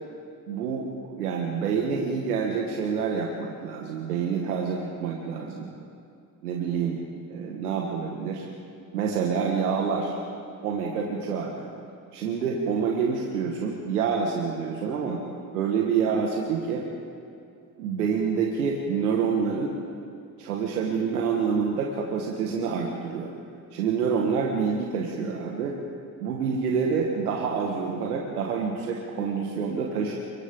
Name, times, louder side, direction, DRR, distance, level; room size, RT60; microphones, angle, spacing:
voice 1, 0.5-5.7 6.4-7.0 7.3-8.4 8.9-10.1 10.6-11.7 12.1-15.2 15.5-16.9 17.8-19.8 20.4-23.3 23.7-25.8 26.2-30.2, right 6 dB, 90° right, -1 dB, 1.9 m, -27 dB
29.5 x 24.5 x 3.9 m, 2.5 s
hypercardioid pair, 60°, 44 cm